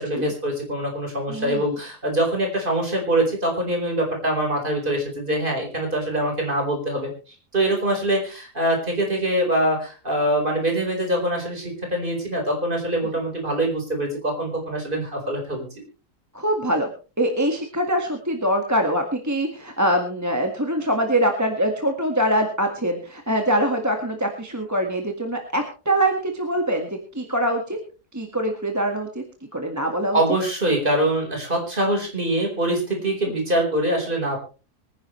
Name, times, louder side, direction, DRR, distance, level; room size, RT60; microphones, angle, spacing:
voice 1, 0.0-15.7 30.1-34.4, right 1 dB, 30° right, 1 dB, 4.7 m, -24 dB
voice 2, 1.3-1.8 16.3-16.9 17.2-27.8 28.1-29.2 29.5-30.2, right 1 dB, 10° right, 3 dB, 1.7 m, -23 dB
24.5 x 10.0 x 3.2 m, 0.35 s
omnidirectional pair, 1.7 m